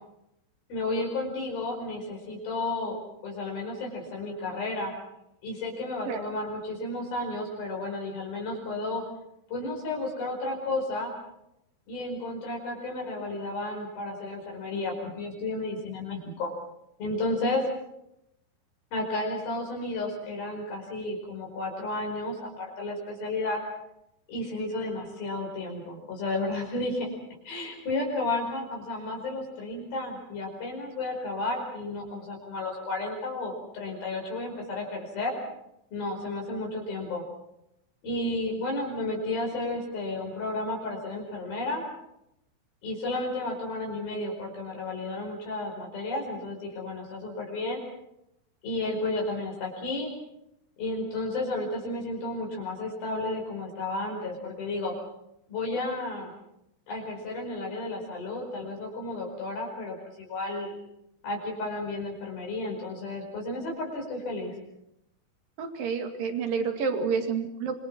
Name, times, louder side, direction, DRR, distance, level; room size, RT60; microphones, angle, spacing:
voice 1, 0.7-3.0 3.2-4.9 5.4-9.0 9.5-11.1 11.9-16.5 17.0-17.6 18.9-23.6 24.3-27.1 27.4-35.4 35.9-37.2 38.0-41.8 42.8-47.8 48.6-50.1 50.8-54.9 55.5-56.3 56.9-60.7 61.2-64.6, left 2 dB, 50° left, 0 dB, 6.5 m, -32 dB
voice 2, 65.6-67.7, right 5 dB, 55° right, 6 dB, 3.5 m, -29 dB
26.5 x 24.5 x 6.1 m, 0.82 s
omnidirectional pair, 5.5 m